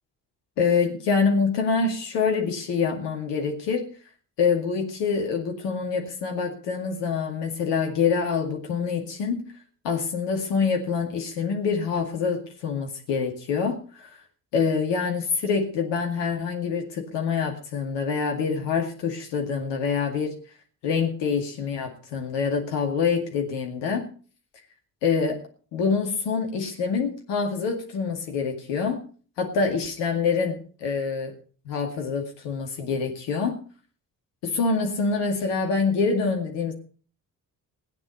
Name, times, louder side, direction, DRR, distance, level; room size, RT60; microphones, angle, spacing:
voice 1, 0.6-3.9 4.4-9.4 9.8-14.2 14.5-20.3 20.8-24.1 25.0-25.4 25.7-29.0 29.4-31.4 31.7-33.6 34.4-36.7, left 5 dB, 60° left, 3 dB, 2.3 m, -26 dB
18.0 x 9.6 x 5.3 m, 0.40 s
figure-of-eight pair, 40°, 47 cm